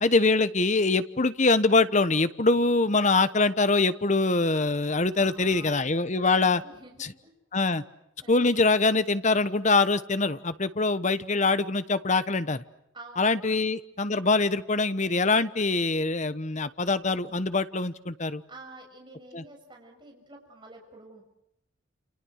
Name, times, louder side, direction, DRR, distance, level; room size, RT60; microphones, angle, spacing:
voice 1, 0.0-6.6 7.5-7.8 8.3-12.6 13.2-18.4 19.3-19.4, left 3 dB, 35° left, 13 dB, 1.1 m, -24 dB
voice 2, 5.2-7.3 8.2-8.5 12.9-13.6 18.5-21.2, right 2 dB, 25° right, 1 dB, 6.9 m, -49 dB
29.0 x 29.0 x 6.5 m, 0.82 s
head